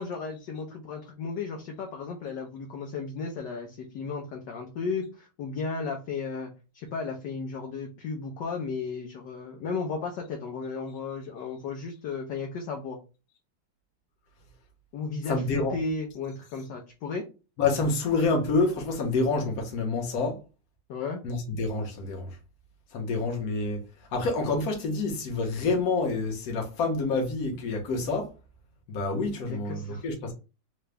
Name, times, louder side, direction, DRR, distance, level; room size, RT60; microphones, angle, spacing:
voice 1, 0.0-13.0 14.9-17.3 20.9-21.2 29.2-30.0, left 4 dB, 70° left, 1.1 m, -34 dB
voice 2, 15.3-15.7 17.6-20.4 21.2-22.3 22.9-23.8 24.1-28.3 28.9-30.3, left 3 dB, 55° left, 1.1 m, -27 dB
3.8 x 2.2 x 3.3 m
omnidirectional pair, 2.4 m